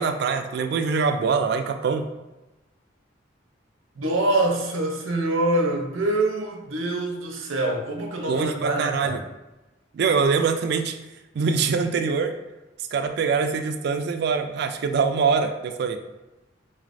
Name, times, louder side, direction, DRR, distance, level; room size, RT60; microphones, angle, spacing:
voice 1, 0.0-2.0 8.3-9.2 9.9-11.0 11.3-12.3 12.9-16.0, right 5 dB, 55° right, 7 dB, 0.3 m, -23 dB
voice 2, 4.0-9.2, right 2 dB, 90° right, 1 dB, 0.7 m, -25 dB
3.9 x 3.1 x 2.5 m, 1.0 s
head